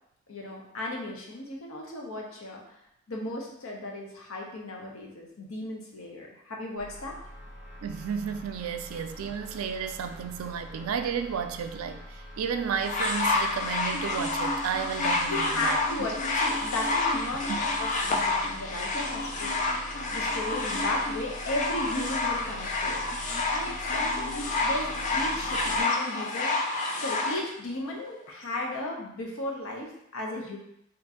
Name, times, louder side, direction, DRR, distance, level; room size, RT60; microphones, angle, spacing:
voice 1, 0.3-2.6 3.1-7.2 15.3-19.5 19.9-26.6 27.0-30.6, left 1 dB, 90° left, -1 dB, 0.8 m, -35 dB
sound 1, 6.8-25.8, equal, 60° left, 0.9 m, -44 dB
voice 2, 7.8-16.1 17.5-17.6, right 7 dB, 90° right, 8 dB, 0.3 m, -32 dB
sound 2, 12.8-27.4 28.3-28.4, left 2 dB, 35° left, 0.3 m, -29 dB
3.0 x 2.5 x 3.7 m, 0.77 s
head